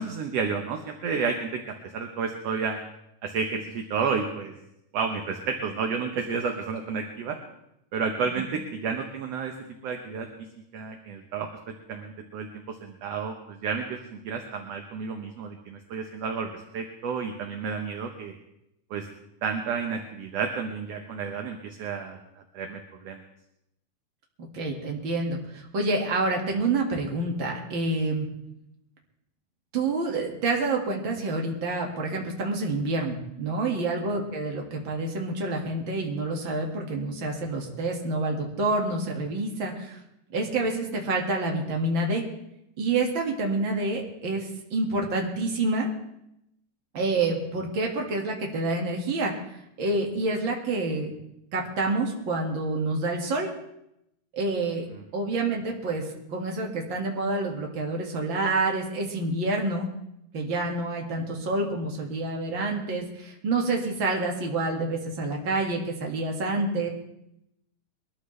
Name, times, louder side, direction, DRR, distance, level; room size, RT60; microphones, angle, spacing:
voice 1, 0.0-2.8 3.2-4.5 4.9-7.4 7.9-9.5 9.8-10.3 10.7-11.5 11.9-18.3 18.9-19.1 19.4-22.2 22.5-23.2 33.6-33.7 54.9-55.0, right 5 dB, 65° right, 4 dB, 1.8 m, -31 dB
voice 2, 24.4-28.3 29.7-40.0 40.3-42.2 42.8-45.9 46.9-49.3 49.8-51.1 51.5-53.5 54.3-54.9 55.1-56.0 56.3-59.9 60.3-66.9, right 2 dB, 40° right, 0 dB, 2.4 m, -28 dB
22.0 x 13.5 x 3.3 m, 0.81 s
omnidirectional pair, 3.8 m